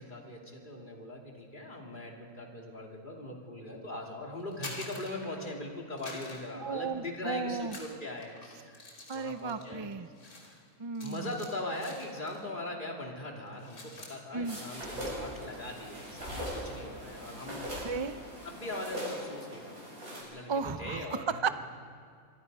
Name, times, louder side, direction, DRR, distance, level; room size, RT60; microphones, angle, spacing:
voice 1, 0.0-9.9 10.4-10.6 11.0-17.7 18.4-19.7 20.1-21.5, left 1 dB, 35° left, 0 dB, 3.1 m, -41 dB
sound 1, 4.4-5.6 6.0-7.2 7.6-12.5 12.8-13.1 13.4-14.2, left 2 dB, 80° left, 3.4 m, -48 dB
voice 2, 6.6-7.8 9.1-10.1 10.8-11.3 14.3-14.6 17.7-18.2 20.5-21.5, right 5 dB, 45° right, 10 dB, 0.3 m, -34 dB
sound 2, 14.4-20.2, equal, 70° right, 8.4 m, -40 dB
26.0 x 23.0 x 5.5 m, 2.1 s
omnidirectional pair, 1.5 m